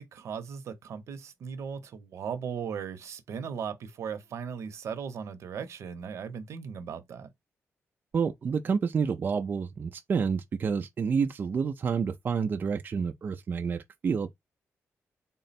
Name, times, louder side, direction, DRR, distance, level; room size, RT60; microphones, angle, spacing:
voice 1, 0.0-7.3, right 7 dB, 75° right, 0.8 m, -37 dB
voice 2, 8.1-14.3, right 6 dB, 40° right, 0.4 m, -29 dB
3.7 x 2.1 x 4.1 m
wide cardioid pair, 140°, 5 cm